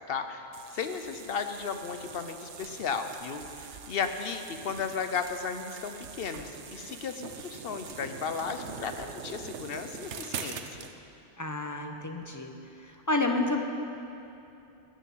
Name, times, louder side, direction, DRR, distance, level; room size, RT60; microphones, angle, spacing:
voice 1, 0.1-10.9, left 6 dB, 60° left, 8 dB, 1.0 m, -35 dB
sound 1, 0.5-10.9, right 7 dB, 75° right, 1.1 m, -43 dB
voice 2, 11.4-12.5 12.8-13.6, left 2 dB, 15° left, 3 dB, 0.9 m, -30 dB
14.0 x 6.7 x 9.3 m, 2.8 s
omnidirectional pair, 1.2 m